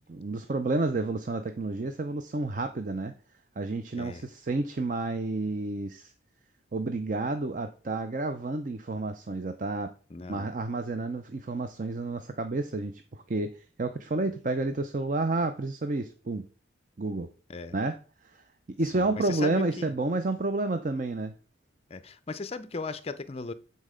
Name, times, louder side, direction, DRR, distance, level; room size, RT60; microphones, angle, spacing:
voice 1, 0.1-3.1 3.6-6.1 6.7-9.9 10.3-16.5 17.0-17.3 17.7-18.0 18.3-21.3, right 2 dB, 40° right, 0.5 m, -30 dB
voice 2, 10.1-10.5 17.5-17.7 18.9-19.9 21.9-23.5, left 3 dB, 30° left, 0.5 m, -37 dB
8.6 x 4.1 x 5.0 m
head